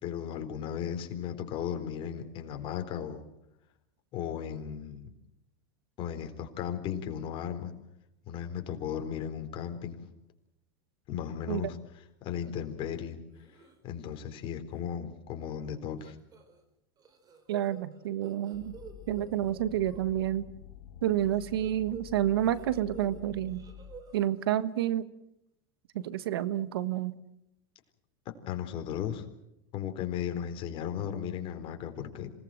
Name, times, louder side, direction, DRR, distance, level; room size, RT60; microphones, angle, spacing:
voice 1, 0.0-3.2 4.1-5.1 6.0-7.7 8.3-10.0 11.1-11.8 12.2-13.2 13.8-16.2 28.3-29.3 29.7-32.3, left 9 dB, 45° left, 6 dB, 4.0 m, -36 dB
sound 1, 13.3-13.8 14.2-14.5 14.7-14.8 16.0-16.6 17.0-20.0 21.1-23.2 23.5-24.3, right 6 dB, 30° right, 4.6 m, -49 dB
voice 2, 17.5-18.8 19.1-20.4 21.0-23.6 24.1-25.1 25.9-27.1, right 12 dB, 85° right, 15 dB, 1.4 m, -29 dB
sound 2, 18.5-24.0, left 9 dB, 70° left, 1.9 m, -48 dB
27.0 x 19.0 x 7.7 m, 0.85 s
supercardioid pair, 115°, 12 cm